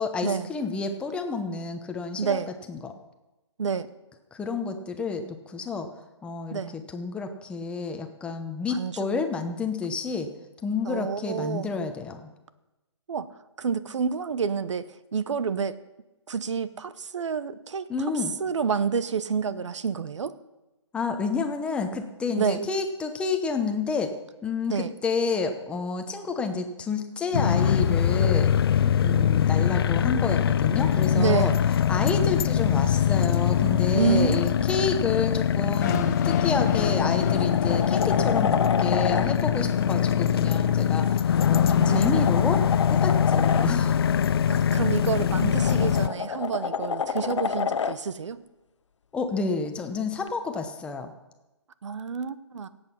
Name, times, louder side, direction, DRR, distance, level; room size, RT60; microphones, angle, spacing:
voice 1, 0.0-2.4 2.7-2.9 4.3-5.9 6.2-10.3 10.6-12.3 17.9-18.3 20.9-24.1 24.4-28.5 28.8-31.5 31.9-41.1 41.5-44.0 49.1-51.1, left 4 dB, 5° left, 5 dB, 0.9 m, -29 dB
voice 2, 2.2-2.5 3.6-3.9 6.5-6.7 8.7-9.0 10.8-11.7 13.1-13.3 13.6-15.8 16.3-17.9 18.4-20.3 22.3-22.6 24.7-24.9 31.1-31.6 33.9-34.5 41.5-42.4 44.5-48.4 51.8-52.7, right 6 dB, 75° right, 15 dB, 0.9 m, -28 dB
sound 1, 27.3-46.1, left 9 dB, 50° left, 0.5 m, -23 dB
sound 2, 35.8-41.8, left 8 dB, 35° left, 1.0 m, -32 dB
sound 3, 37.0-39.3 40.9-43.7 45.2-48.0 50.3-50.4, left 6 dB, 75° left, 0.9 m, -30 dB
17.5 x 8.2 x 5.8 m, 1.1 s
hypercardioid pair, 150°, 16 cm